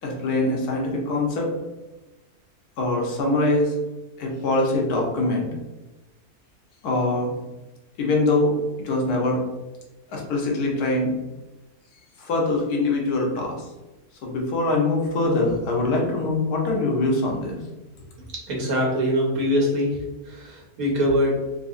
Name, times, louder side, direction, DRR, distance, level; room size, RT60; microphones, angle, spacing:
voice 1, 0.0-1.5 2.8-3.7 4.2-5.5 6.8-7.3 8.0-9.4 10.1-11.1 12.2-13.6 14.2-17.6, left 2 dB, 80° left, -1 dB, 1.3 m, -23 dB
voice 2, 18.3-20.0 20.2-21.4, equal, 70° right, -2 dB, 1.4 m, -23 dB
3.7 x 2.9 x 2.5 m, 1.1 s
omnidirectional pair, 1.6 m